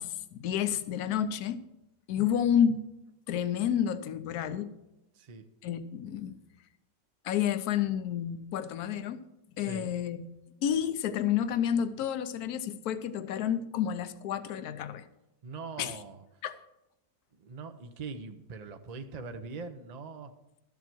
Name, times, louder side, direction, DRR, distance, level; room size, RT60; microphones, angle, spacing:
voice 1, 0.0-1.6 2.1-2.8 3.3-4.8 5.6-6.4 7.2-9.2 9.6-10.2 10.6-15.0 15.8-16.0 16.4-16.6, left 9 dB, 70° left, 1.2 m, -30 dB
voice 2, 5.1-5.5 9.6-9.9 15.4-16.2 17.3-20.3, right 4 dB, 45° right, 0.5 m, -42 dB
13.0 x 7.4 x 6.1 m
omnidirectional pair, 1.8 m